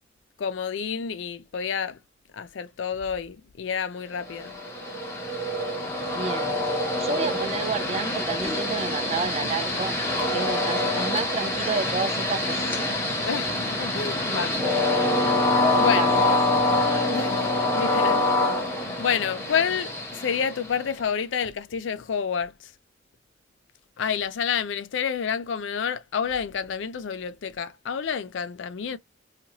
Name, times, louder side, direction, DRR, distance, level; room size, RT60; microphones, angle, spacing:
voice 1, 0.4-2.0 2.3-4.5 13.2-14.6 15.8-16.1 17.1-18.2 19.0-22.5 24.0-29.0, left 7 dB, 70° left, 0.4 m, -29 dB
Train, 4.3-21.0, left 2 dB, 15° left, 0.9 m, -25 dB
voice 2, 6.1-6.6 7.0-13.0 15.7-16.4, right 5 dB, 35° right, 0.3 m, -31 dB
2.7 x 2.5 x 2.8 m
head